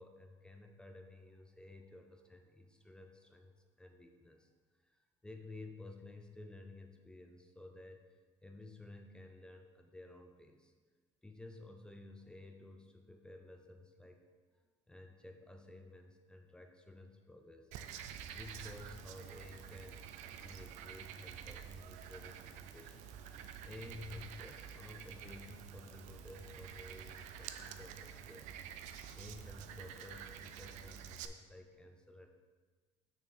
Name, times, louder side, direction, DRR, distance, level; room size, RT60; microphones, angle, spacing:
voice 1, 0.0-4.5 4.8-8.1 8.4-10.7 11.2-14.2 14.9-17.7 18.3-20.0 20.4-23.1 23.6-28.5 29.1-32.3, left 2 dB, 5° left, 4 dB, 0.4 m, -53 dB
Frog, 17.7-31.3, right 8 dB, 70° right, 0.5 m, -49 dB
6.5 x 6.4 x 4.3 m, 1.4 s
cardioid pair, 150°, 13 cm